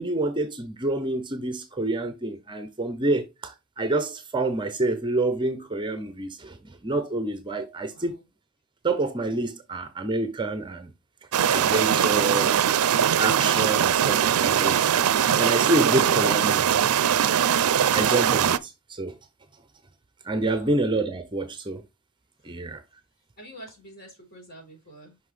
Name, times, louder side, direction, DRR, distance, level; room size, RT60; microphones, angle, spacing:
voice 1, 0.0-6.6 6.8-8.2 8.8-10.9 11.5-12.5 13.2-16.8 17.8-19.1 20.3-21.8 22.4-22.8, right 2 dB, 20° right, 0.6 m, -27 dB
voice 2, 7.8-8.3 20.3-20.7 22.4-22.5 23.4-25.2, equal, 45° left, 3.9 m, -47 dB
sound 1, 11.3-18.6, right 9 dB, 80° right, 0.4 m, -21 dB
5.8 x 5.5 x 3.2 m
head